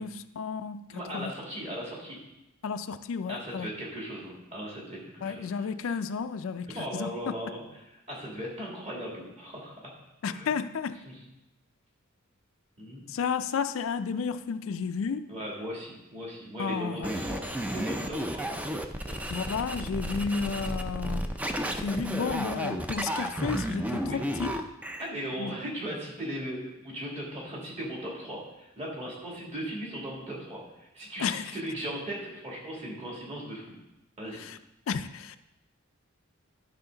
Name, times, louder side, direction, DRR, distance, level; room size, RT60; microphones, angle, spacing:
voice 1, 0.0-0.9 1.1-1.3 2.6-3.7 5.2-7.3 10.2-11.0 13.1-15.3 16.6-17.1 19.3-21.2 21.7-24.5 25.4-25.6 31.2-31.5 34.3-34.6 34.9-35.4, left 5 dB, 70° left, 0.4 m, -32 dB
voice 2, 0.9-2.2 3.3-6.0 6.7-9.9 10.3-10.5 11.0-11.2 12.8-13.1 15.3-18.8 19.1-19.2 24.1-24.2 25.0-33.8 34.2-34.4, equal, 30° right, 2.6 m, -38 dB
sound 1, 17.0-25.1, equal, 5° right, 0.4 m, -33 dB
11.0 x 5.7 x 3.9 m
head